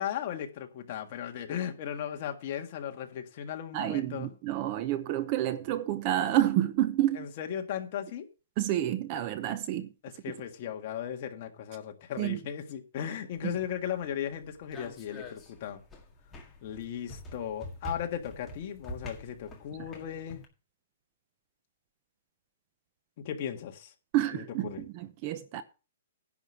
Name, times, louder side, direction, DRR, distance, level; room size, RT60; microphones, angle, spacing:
voice 1, 0.0-4.3 7.1-8.3 10.0-15.8 16.6-20.4 23.2-23.9 24.3-24.9, left 9 dB, 40° left, 1.7 m, -36 dB
voice 2, 3.7-7.3 8.6-9.9 12.2-12.4 13.4-13.5 24.1-24.7 24.9-25.6, right 13 dB, 30° right, 0.8 m, -29 dB
sound 1, 13.3-20.5, equal, 10° left, 1.9 m, -46 dB
10.5 x 5.1 x 7.4 m
hypercardioid pair, 165°, 0 cm